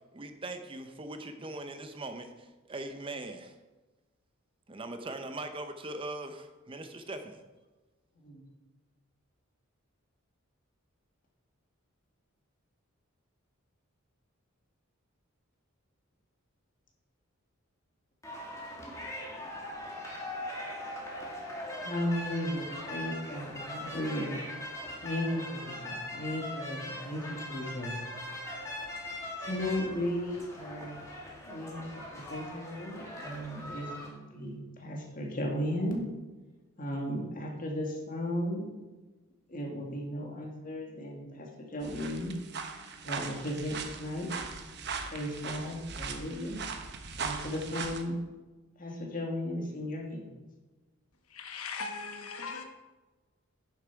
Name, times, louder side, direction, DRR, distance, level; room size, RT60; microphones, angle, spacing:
voice 1, 0.1-3.5 4.7-7.4, right 2 dB, 25° right, 0.6 m, -40 dB
voice 2, 8.2-8.5 21.8-24.3 25.0-28.0 29.4-31.0 31.4-36.1 36.8-38.7 39.5-42.3 43.0-44.3 45.1-46.6 47.2-48.2 48.8-50.3, left 1 dB, 40° left, 1.9 m, -35 dB
sound 1, 18.2-34.1, left 1 dB, 15° left, 2.0 m, -41 dB
sound 2, 41.8-48.0, right 5 dB, 50° right, 0.9 m, -39 dB
voice 3, 51.2-52.6, left 4 dB, 85° left, 1.1 m, -39 dB
10.0 x 7.0 x 4.6 m
head